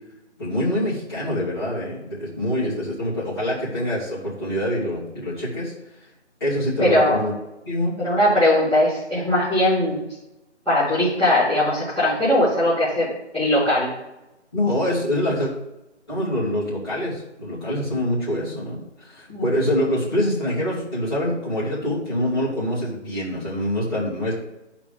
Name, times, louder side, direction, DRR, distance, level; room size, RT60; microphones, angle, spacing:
voice 1, 0.4-5.7 6.4-7.3 7.7-7.9 14.5-15.5 16.1-24.3, left 1 dB, 20° left, -10 dB, 2.7 m, -25 dB
voice 2, 6.8-7.2 8.0-10.0 10.6-13.1 13.3-13.9 19.3-19.5, left 1 dB, ahead, -30 dB, 2.1 m, -20 dB
11.5 x 5.0 x 3.6 m, 0.95 s
figure-of-eight pair, 180°, 36 cm